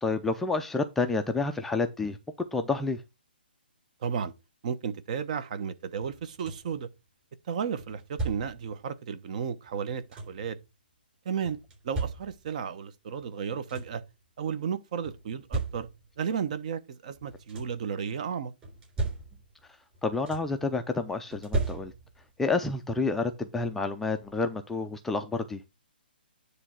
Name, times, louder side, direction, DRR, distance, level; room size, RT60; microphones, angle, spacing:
voice 1, 0.0-2.2 2.5-3.0 20.0-21.9 22.4-25.6, left 3 dB, 5° left, 0.5 m, -29 dB
voice 2, 4.0-4.3 4.6-6.9 7.5-10.6 11.2-11.6 11.8-14.0 14.4-15.9 16.2-18.5, right 7 dB, 45° right, 1.1 m, -33 dB
sound 1, 6.0-6.8 7.8-8.7 9.7-10.5 11.4-12.6 13.2-13.3 13.5-14.1 15.0-16.2 17.1-17.9 18.6-19.7 19.9-20.7 21.3-22.3 23.6-23.7 24.2-24.4, right 3 dB, 15° right, 3.5 m, -36 dB
9.8 x 3.3 x 6.3 m
hypercardioid pair, 155°, 6 cm